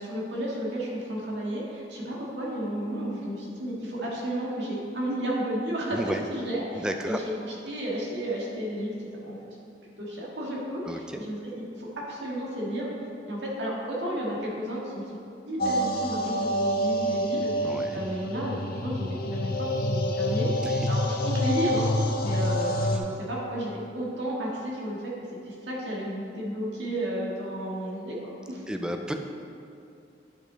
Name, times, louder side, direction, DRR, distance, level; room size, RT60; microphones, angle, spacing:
voice 1, 0.0-8.9 9.2-9.5 10.0-12.9 13.2-15.0 15.5-20.5 20.9-21.9 22.2-23.7 23.9-25.1 25.4-28.2 28.5-28.6, equal, 80° right, -5 dB, 1.8 m, -32 dB
voice 2, 6.8-7.2 10.9-11.2 17.6-18.0 20.6-20.9 22.9-23.0 28.7-29.1, equal, 5° right, 4 dB, 0.4 m, -32 dB
sound 1, 15.6-23.0, left 1 dB, 55° left, 0.6 m, -27 dB
9.6 x 5.2 x 3.9 m, 2.6 s
head